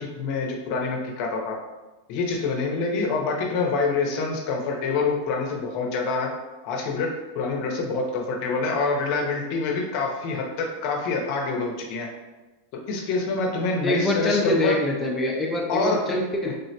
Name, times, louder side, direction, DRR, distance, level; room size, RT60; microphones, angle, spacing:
voice 1, 0.0-1.5 2.1-6.3 6.6-7.1 7.3-12.1 12.9-14.8 15.7-16.0, left 3 dB, 55° left, 1 dB, 0.6 m, -26 dB
voice 2, 13.8-16.5, left 2 dB, 10° left, -2 dB, 0.4 m, -24 dB
3.5 x 2.0 x 2.7 m, 1.1 s
hypercardioid pair, 110°, 0 cm